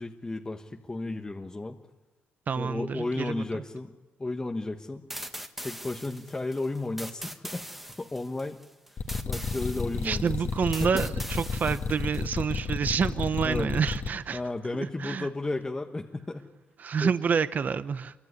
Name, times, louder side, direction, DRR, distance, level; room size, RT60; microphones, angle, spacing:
voice 1, 0.0-1.8 2.5-3.9 4.2-5.1 5.6-7.7 8.0-8.6 9.2-10.3 10.8-11.0 11.6-11.8 13.4-13.7 14.3-16.5 17.0-17.1, left 2 dB, 15° left, 3 dB, 1.3 m, -33 dB
voice 2, 2.5-3.4 10.0-14.4 14.8-15.3 16.8-18.1, right 6 dB, 45° right, 12 dB, 0.9 m, -28 dB
sound 1, 5.1-12.2, equal, 5° right, 1.6 m, -42 dB
sound 2, 9.0-14.1, left 4 dB, 45° left, 1.9 m, -31 dB
26.0 x 23.0 x 9.8 m, 1.1 s
cardioid pair, 105°, 4 cm